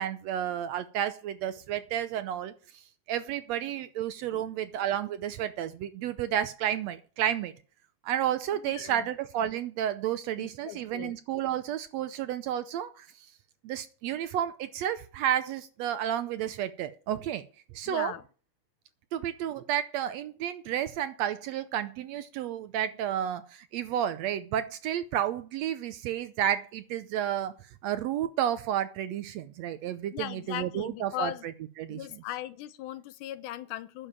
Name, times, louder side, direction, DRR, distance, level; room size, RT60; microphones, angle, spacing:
voice 1, 0.0-2.8 3.1-7.5 8.0-13.1 13.6-17.4 17.7-18.1 19.1-27.5 27.8-31.3 31.8-32.2, right 10 dB, 75° right, 1.7 m, -31 dB
voice 2, 8.6-9.1 10.4-11.2 17.9-18.2 30.1-31.5 31.9-34.1, left 14 dB, 90° left, 2.3 m, -38 dB
10.0 x 7.1 x 8.6 m
omnidirectional pair, 3.5 m